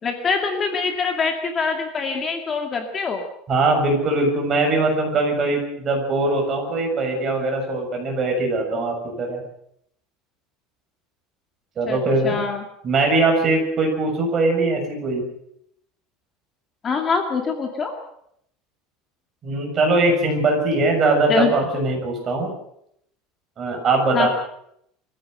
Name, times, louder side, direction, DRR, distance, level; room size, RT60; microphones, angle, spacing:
voice 1, 0.0-3.2 11.9-12.0 12.2-12.6 16.8-17.9 21.3-21.6 24.1-24.3, left 5 dB, 20° left, 4 dB, 2.2 m, -24 dB
voice 2, 3.5-9.4 11.8-12.4 12.8-15.2 19.4-22.5 23.6-24.3, right 2 dB, 25° right, 1 dB, 7.0 m, -21 dB
24.0 x 15.5 x 7.9 m, 0.73 s
cardioid pair, 165°, 0 cm